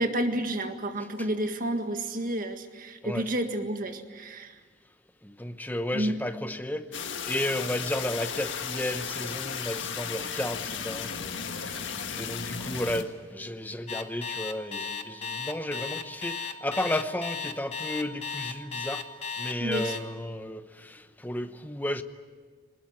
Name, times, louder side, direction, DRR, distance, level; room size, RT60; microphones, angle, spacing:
voice 1, 0.0-4.5 5.9-6.2 19.6-20.0, right 1 dB, 45° right, 1.8 m, -30 dB
voice 2, 5.2-6.9 7.3-19.1 19.4-22.0, left 1 dB, 10° left, 0.9 m, -33 dB
sound 1, 6.9-13.0, left 6 dB, 90° left, 1.6 m, -35 dB
Alarm, 13.9-20.0, left 6 dB, 35° left, 1.3 m, -34 dB
21.0 x 20.0 x 9.8 m
head